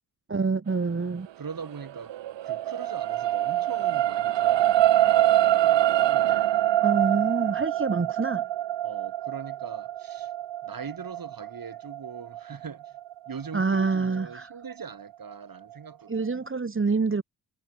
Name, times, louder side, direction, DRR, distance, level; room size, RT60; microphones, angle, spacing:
voice 1, 0.3-1.3 6.8-8.4 13.5-14.5 16.1-17.2, right 4 dB, 25° right, 2.0 m, -26 dB
voice 2, 1.4-6.4 8.8-10.3 10.6-13.0 13.3-16.3, right 6 dB, 45° right, 7.1 m, -41 dB
sound 1, 1.7-14.2 14.7-14.8, right 13 dB, 65° right, 2.3 m, -25 dB
hypercardioid pair, 40°, 48 cm